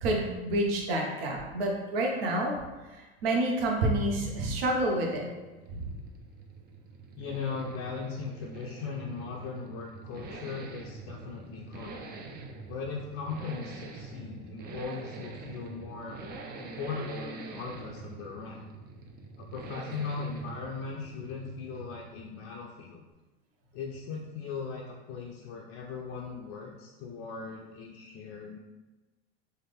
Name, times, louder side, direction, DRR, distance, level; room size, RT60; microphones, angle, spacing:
voice 1, 0.0-2.5 2.9-5.3 5.7-5.9, right 1 dB, 70° right, 0 dB, 0.8 m, -28 dB
sound 1, 4.9-22.6, right 3 dB, 30° right, 0.4 m, -45 dB
voice 2, 7.2-12.0 12.7-16.2 16.6-18.7 19.4-23.0 23.7-28.6, left 5 dB, 45° left, -2 dB, 0.5 m, -38 dB
3.4 x 2.1 x 3.3 m, 1.2 s
hypercardioid pair, 85°, 31 cm